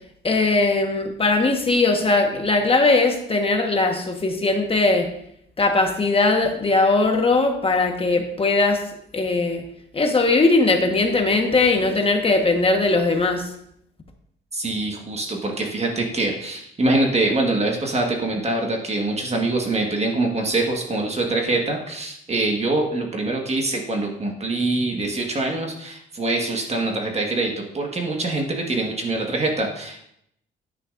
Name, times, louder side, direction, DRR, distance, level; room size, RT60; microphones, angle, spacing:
voice 1, 0.2-5.1 5.6-8.8 9.1-9.6 9.9-13.5, left 3 dB, 30° left, 4 dB, 1.3 m, -19 dB
voice 2, 14.5-30.0, right 2 dB, 30° right, 1 dB, 1.5 m, -24 dB
9.7 x 9.7 x 2.5 m, 0.73 s
cardioid pair, 90°, 20 cm